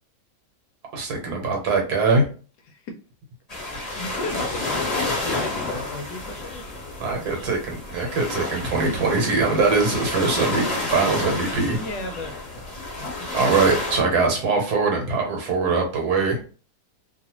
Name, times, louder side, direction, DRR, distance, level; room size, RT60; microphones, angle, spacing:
voice 1, 0.9-2.3 7.0-11.8 13.3-16.4, right 4 dB, 65° right, 1 dB, 1.3 m, -22 dB
sound 1, 3.5-14.0, left 2 dB, 25° left, 1.1 m, -30 dB
voice 2, 3.6-6.6 11.8-13.3, left 2 dB, 75° left, 5 dB, 1.1 m, -36 dB
2.9 x 2.4 x 2.9 m, 0.38 s
omnidirectional pair, 1.9 m